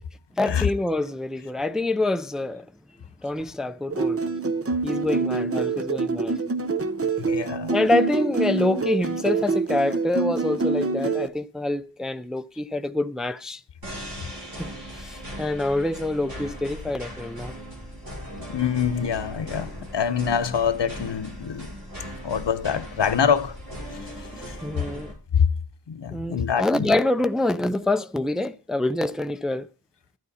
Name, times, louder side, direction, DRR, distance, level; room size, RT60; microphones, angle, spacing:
voice 1, 0.4-2.7 3.2-4.2 4.8-6.4 7.7-13.6 14.6-17.5 24.6-25.1 26.1-29.7, left 2 dB, ahead, 0.4 m, -26 dB
sound 1, 3.9-11.3, right 4 dB, 35° right, 0.8 m, -26 dB
voice 2, 7.2-7.7 14.2-14.3 18.4-21.7 22.2-23.6 23.9-24.6 25.4-25.5 25.9-26.9, left 7 dB, 75° left, 0.8 m, -25 dB
sound 2, 13.8-25.1, equal, 55° right, 5.9 m, -38 dB
12.5 x 9.2 x 4.2 m
wide cardioid pair, 65°, 43 cm